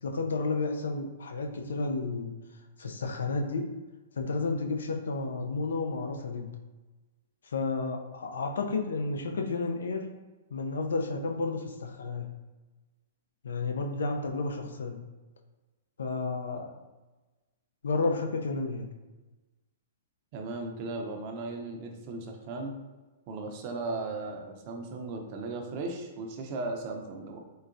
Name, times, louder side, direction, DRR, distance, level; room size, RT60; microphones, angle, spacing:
voice 1, 0.0-2.3 2.8-3.7 4.1-6.5 7.4-10.0 10.5-12.3 13.4-15.0 16.0-16.7 17.8-18.9, left 3 dB, 80° left, 3 dB, 0.4 m, -31 dB
voice 2, 20.3-22.8 23.3-27.4, right 3 dB, 45° right, 3 dB, 0.6 m, -36 dB
3.8 x 2.1 x 2.5 m, 1.2 s
hypercardioid pair, 125°, 0 cm